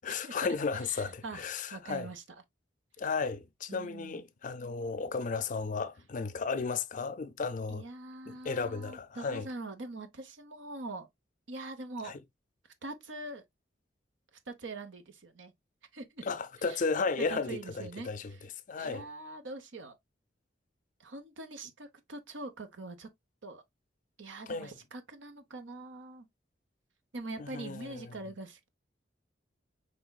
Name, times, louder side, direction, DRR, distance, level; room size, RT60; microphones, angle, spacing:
voice 1, 0.0-2.1 3.0-7.8 8.3-9.5 12.0-12.2 16.3-18.3 18.7-19.0 24.5-24.7 27.4-28.1, left 4 dB, 45° left, 0.5 m, -34 dB
voice 2, 0.8-1.4 1.7-2.2 3.7-4.2 7.7-11.1 11.5-12.2 12.8-13.4 14.5-15.5 15.9-16.2 16.6-16.8 17.3-18.4 18.8-20.0 21.0-23.1 23.4-23.6 24.2-26.3 27.1-28.7, right 2 dB, 85° right, 0.9 m, -43 dB
5.1 x 3.4 x 2.3 m
head